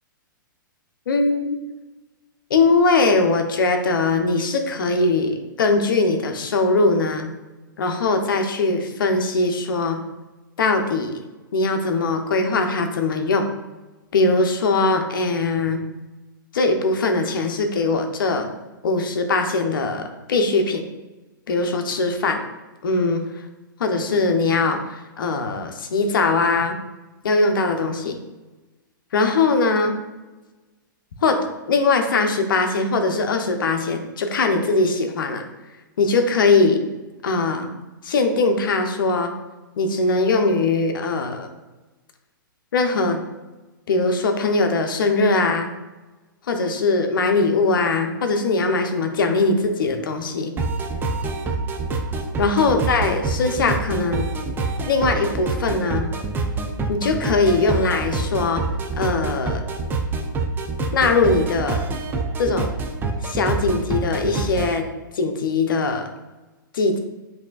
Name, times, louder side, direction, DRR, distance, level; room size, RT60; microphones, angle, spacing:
voice 1, 1.1-1.6 2.5-7.3 7.8-10.0 10.6-11.1 11.5-13.5 14.1-15.8 16.5-18.5 18.8-20.9 21.5-22.4 22.8-23.3 23.8-26.8 27.2-28.2 29.1-30.0 31.2-35.4 36.0-36.8 37.2-37.7 38.0-39.3 39.8-41.5 42.7-43.2 43.9-45.7 46.5-50.5 52.4-54.3 54.9-56.1 56.9-58.6 59.0-59.6 60.9-61.9 62.4-62.7 63.2-64.9 65.1-66.1 66.7-67.0, left 3 dB, 75° left, 5 dB, 0.7 m, -21 dB
sound 1, 50.6-64.8, right 3 dB, 20° right, 0.5 m, -26 dB
8.1 x 2.8 x 2.4 m, 1.2 s
hypercardioid pair, 120°, 11 cm